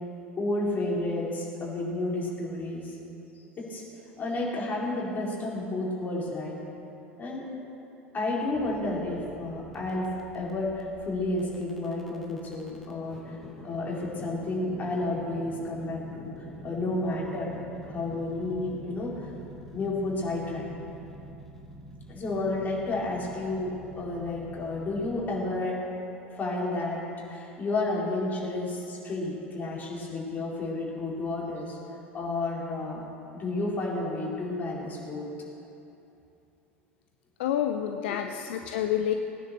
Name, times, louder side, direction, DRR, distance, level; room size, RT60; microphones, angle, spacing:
voice 1, 0.4-3.0 3.6-3.8 4.2-6.5 7.2-7.5 8.1-13.4 13.6-16.3 16.6-17.5 17.8-19.3 19.7-20.6 22.1-25.8 26.3-27.0 27.3-31.8 32.1-33.0 33.3-35.3 37.9-38.0, left 2 dB, 25° left, -4 dB, 4.5 m, -31 dB
sound 1, 8.5-25.4, right 1 dB, 5° left, 2.4 m, -47 dB
voice 2, 37.4-39.1, left 10 dB, 60° left, 6 dB, 0.7 m, -28 dB
19.5 x 10.0 x 6.9 m, 2.8 s
figure-of-eight pair, 80°, 7 cm